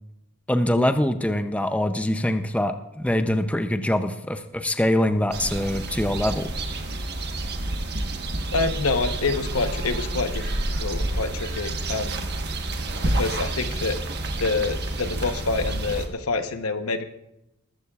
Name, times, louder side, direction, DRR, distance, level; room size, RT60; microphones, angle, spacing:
voice 1, 0.5-6.5, left 1 dB, 5° left, 8 dB, 0.5 m, -24 dB
sound 1, 5.3-16.1, right 2 dB, 50° right, 1.3 m, -29 dB
voice 2, 8.5-10.5 10.8-12.3 13.0-14.0 14.4-17.0, left 3 dB, 75° left, 8 dB, 1.0 m, -27 dB
21.5 x 14.0 x 2.4 m, 0.88 s
head